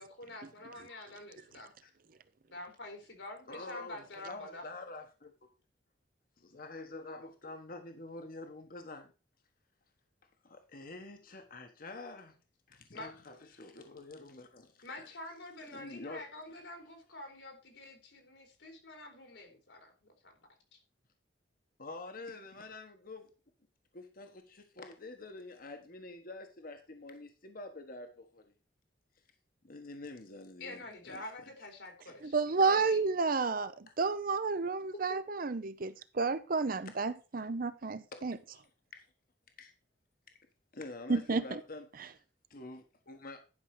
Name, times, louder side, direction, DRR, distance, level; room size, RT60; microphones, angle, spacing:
voice 1, 0.0-1.7 2.5-4.6 12.9-13.1 14.8-20.3 20.7-20.8 30.6-32.4 32.7-33.0, left 2 dB, 80° left, 3.4 m, -47 dB
voice 2, 3.5-5.5 6.4-9.1 10.4-12.4 12.7-15.1 15.7-16.2 21.8-23.3 23.9-28.5 29.6-31.5 38.1-38.3 38.9-39.1 39.6-39.7 40.7-42.2 42.5-43.5, left 2 dB, 50° left, 1.3 m, -47 dB
voice 3, 32.2-38.4 41.1-41.6 42.0-42.1, right 4 dB, 50° right, 0.7 m, -31 dB
11.0 x 5.6 x 4.8 m
head